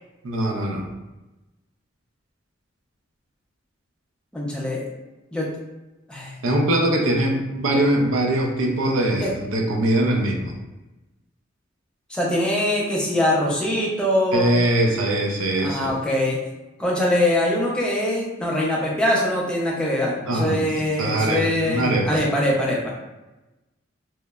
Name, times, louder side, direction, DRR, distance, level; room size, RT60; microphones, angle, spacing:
voice 1, 0.2-0.9 6.4-10.5 14.3-15.9 20.2-22.1, right 1 dB, 80° right, 1 dB, 0.5 m, -22 dB
voice 2, 4.3-4.9 5.3-5.5 6.1-6.3 9.2-9.3 12.1-14.5 15.6-16.4 16.8-22.9, left 1 dB, 5° left, -4 dB, 0.4 m, -23 dB
2.9 x 2.0 x 2.2 m, 1.0 s
head